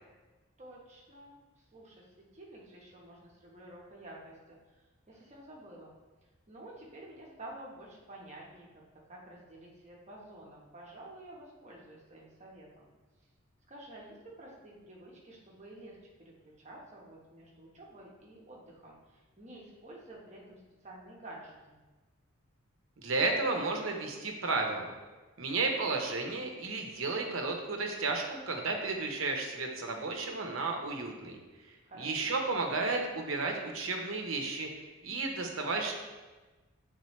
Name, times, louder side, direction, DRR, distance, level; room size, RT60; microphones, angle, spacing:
voice 1, 0.6-5.9 6.5-8.7 9.1-12.9 13.7-21.8 31.8-32.4, right 1 dB, 30° right, -3 dB, 1.0 m, -50 dB
voice 2, 23.0-24.9 25.4-31.4 32.0-35.9, right 3 dB, 70° right, 2 dB, 0.9 m, -33 dB
8.1 x 3.8 x 3.1 m, 1.2 s
head